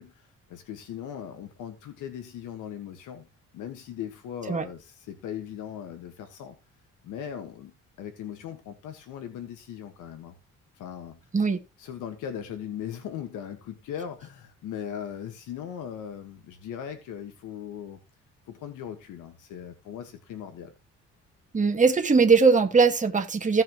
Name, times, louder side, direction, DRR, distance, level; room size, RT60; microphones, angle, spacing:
voice 1, 0.0-3.3 3.5-6.6 7.0-7.7 8.0-10.3 10.7-11.2 11.8-18.0 18.5-20.7, left 9 dB, 85° left, 1.5 m, -39 dB
voice 2, 21.5-23.6, right 4 dB, 25° right, 1.7 m, -20 dB
16.5 x 5.7 x 3.0 m
cardioid pair, 90°, 30 cm